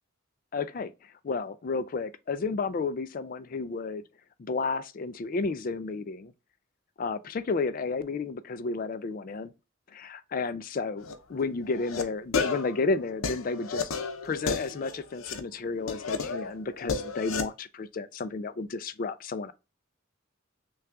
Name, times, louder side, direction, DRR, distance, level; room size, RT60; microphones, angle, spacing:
voice 1, 0.5-4.0 4.4-6.3 7.0-9.5 9.9-13.9 14.2-19.5, left 4 dB, 45° left, 0.4 m, -32 dB
sound 1, 11.0-11.1 11.7-12.0 12.3-15.4 15.9-17.5, left 5 dB, 90° left, 0.6 m, -33 dB
5.7 x 2.3 x 2.4 m
head